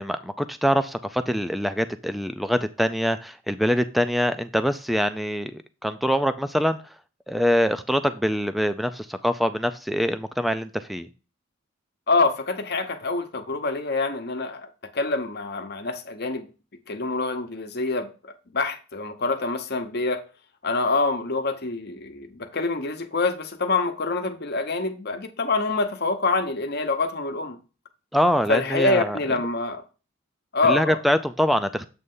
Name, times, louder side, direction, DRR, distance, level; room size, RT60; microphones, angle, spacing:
voice 1, 0.0-6.8 7.3-11.1 28.1-29.2 30.7-31.9, equal, ahead, 0.3 m, -24 dB
voice 2, 12.1-16.5 16.9-20.2 20.6-27.6 28.5-29.8 30.5-31.0, left 3 dB, 50° left, 0.9 m, -26 dB
8.0 x 3.3 x 5.4 m
head